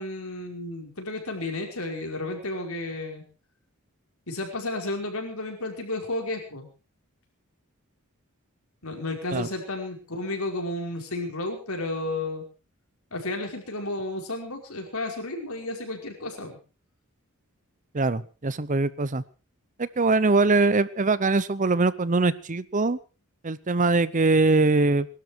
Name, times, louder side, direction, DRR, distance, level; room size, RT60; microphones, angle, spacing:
voice 1, 0.0-3.2 4.3-6.7 8.8-12.4 13.1-16.6, left 2 dB, 70° left, 3 dB, 5.2 m, -32 dB
voice 2, 17.9-19.2 19.8-23.0 23.4-25.1, right 3 dB, 35° right, 17 dB, 0.7 m, -22 dB
22.0 x 12.5 x 4.6 m, 0.35 s
head